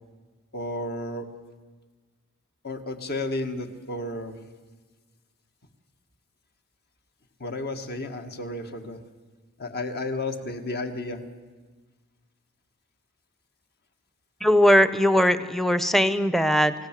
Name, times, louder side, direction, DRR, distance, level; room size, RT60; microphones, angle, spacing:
voice 1, 0.5-1.3 2.6-4.4 7.4-9.0 9.6-11.2, left 2 dB, 50° left, 6 dB, 1.9 m, -32 dB
voice 2, 14.4-16.7, equal, ahead, 12 dB, 0.8 m, -20 dB
29.5 x 17.5 x 7.6 m, 1.4 s
head